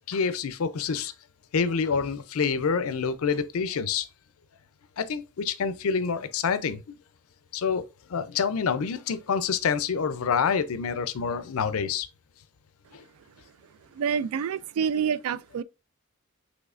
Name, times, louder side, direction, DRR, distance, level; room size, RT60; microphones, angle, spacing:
voice 1, 0.1-1.1 1.5-4.1 5.0-6.9 7.5-7.8 8.1-12.1 12.9-13.0, left 6 dB, 80° left, 0.5 m, -27 dB
voice 2, 13.9-15.6, right 7 dB, 85° right, 0.3 m, -27 dB
6.1 x 3.1 x 2.5 m
head